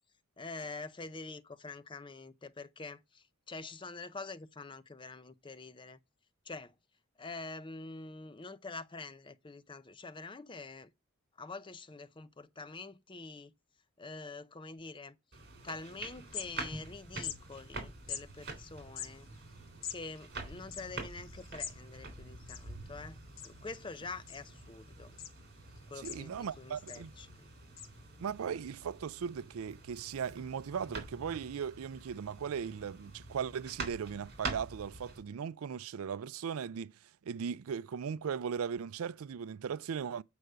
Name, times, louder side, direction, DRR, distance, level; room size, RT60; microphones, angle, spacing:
voice 1, 0.4-6.0 6.4-6.7 7.2-10.9 11.4-13.5 14.0-15.2 15.6-19.3 19.9-25.2 25.9-27.5, left 3 dB, 25° left, 0.6 m, -46 dB
sound 1, 15.3-35.2, right 3 dB, 50° right, 3.3 m, -46 dB
sound 2, 15.7-15.8 16.1-16.9 17.2-17.4 18.1-18.2 18.8-21.8 22.1-22.2 22.4-23.0 23.4-23.8 24.3-24.8 25.2-25.3 25.8-26.5 26.9-27.1 27.8-27.9, left 8 dB, 65° left, 1.2 m, -43 dB
voice 2, 26.0-27.1 28.2-40.2, right 7 dB, 85° right, 0.4 m, -38 dB
7.9 x 4.8 x 6.7 m
head